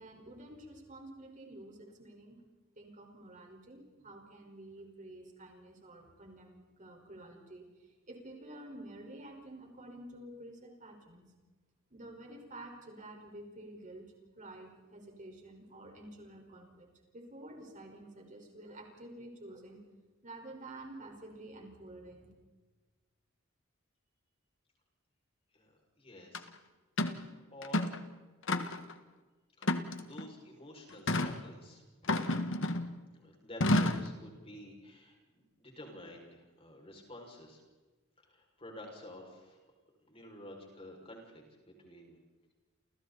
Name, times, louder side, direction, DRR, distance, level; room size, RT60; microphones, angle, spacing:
voice 1, 0.0-2.4 2.7-11.3 11.9-19.8 20.2-22.3, right 1 dB, 40° right, 2 dB, 5.1 m, -50 dB
voice 2, 25.5-26.5 27.5-27.9 29.6-31.8 33.1-37.6 38.3-39.6 40.0-42.2, left 1 dB, 30° left, 0 dB, 6.3 m, -51 dB
sound 1, 26.3-26.4 27.0-27.2 27.6-28.0 28.5-28.9 29.6-30.3 31.1-31.4 32.1-32.9 33.6-34.1, left 1 dB, 65° left, 1.8 m, -30 dB
30.0 x 29.5 x 4.3 m, 1.3 s
head